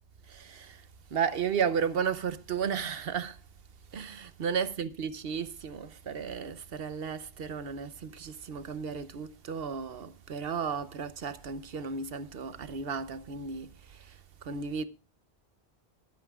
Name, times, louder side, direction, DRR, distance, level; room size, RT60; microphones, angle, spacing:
voice 1, 0.3-0.8 1.1-3.4 3.9-14.1 14.4-14.8, right 6 dB, 65° right, 1.0 m, -34 dB
24.0 x 9.4 x 2.3 m
omnidirectional pair, 1.1 m